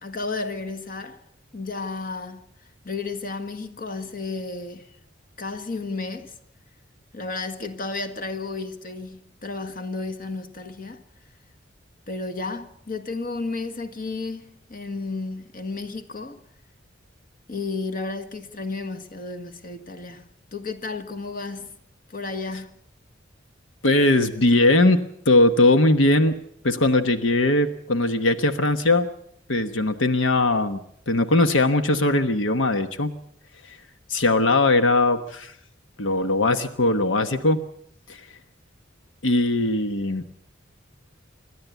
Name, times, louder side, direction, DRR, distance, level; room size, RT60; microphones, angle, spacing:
voice 1, 0.0-1.2 1.5-2.5 2.8-5.0 5.4-6.3 7.1-11.0 12.1-16.4 17.5-21.7 22.1-22.8, left 3 dB, 45° left, 1.6 m, -32 dB
voice 2, 23.8-26.4 26.6-29.1 29.5-30.8 31.1-33.1 33.6-33.8 34.1-35.5 36.0-37.6 38.1-38.3 39.2-40.2, left 2 dB, 90° left, 1.2 m, -20 dB
27.0 x 12.5 x 8.2 m
head